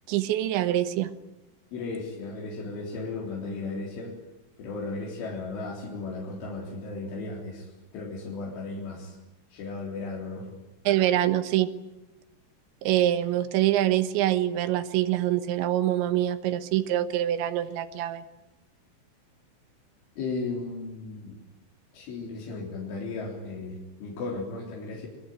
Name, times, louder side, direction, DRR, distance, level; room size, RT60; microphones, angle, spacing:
voice 1, 0.1-1.1 10.9-11.7 12.8-18.2, right 13 dB, 75° right, 11 dB, 3.5 m, -25 dB
voice 2, 1.7-4.2 4.6-9.2 9.5-10.5 20.2-21.4 21.9-25.1, left 3 dB, 85° left, -2 dB, 6.4 m, -35 dB
26.5 x 23.0 x 9.3 m, 0.95 s
omnidirectional pair, 5.4 m